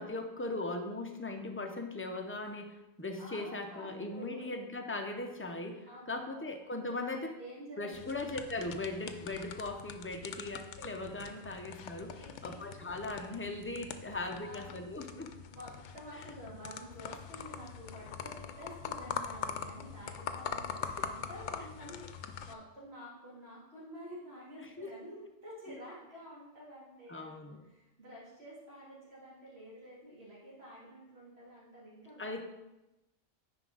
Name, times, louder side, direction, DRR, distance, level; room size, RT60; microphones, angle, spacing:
voice 1, 0.0-7.3 7.8-15.3 21.0-21.1 24.6-24.9 27.1-27.6 32.2-32.4, left 2 dB, 15° left, 4 dB, 0.4 m, -39 dB
voice 2, 3.2-4.5 5.9-6.5 7.0-8.1 11.4-11.6 11.8-12.6 14.1-14.8 15.5-32.3, equal, 55° right, -7 dB, 2.9 m, -50 dB
sound 1, 7.9-22.5, left 7 dB, 70° left, 0.9 m, -43 dB
9.5 x 5.1 x 3.9 m, 0.97 s
omnidirectional pair, 1.3 m